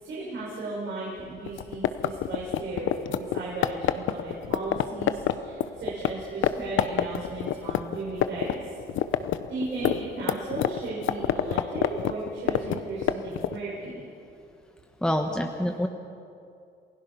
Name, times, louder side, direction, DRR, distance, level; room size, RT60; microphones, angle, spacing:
voice 1, 0.0-8.7 9.5-14.0, right 2 dB, 70° right, -7 dB, 5.8 m, -35 dB
sound 1, 1.5-6.1 6.4-6.5 6.8-8.5 8.8-13.6, left 12 dB, 80° left, 0.8 m, -26 dB
voice 2, 15.0-15.9, left 1 dB, 5° left, 4 dB, 1.2 m, -26 dB
28.0 x 16.5 x 5.6 m, 2.5 s
cardioid pair, 90°, 20 cm